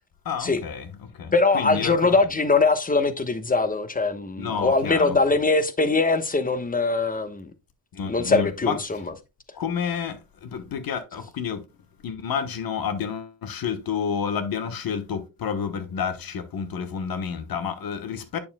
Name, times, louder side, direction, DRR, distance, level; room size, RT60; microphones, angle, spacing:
voice 1, 0.2-2.2 4.4-5.2 7.9-9.0 9.5-11.7 12.0-18.4, left 7 dB, 75° left, 1.2 m, -30 dB
voice 2, 1.3-7.5 8.1-9.0, left 3 dB, 25° left, 1.1 m, -22 dB
8.4 x 6.9 x 2.2 m
cardioid pair, 85°, 36 cm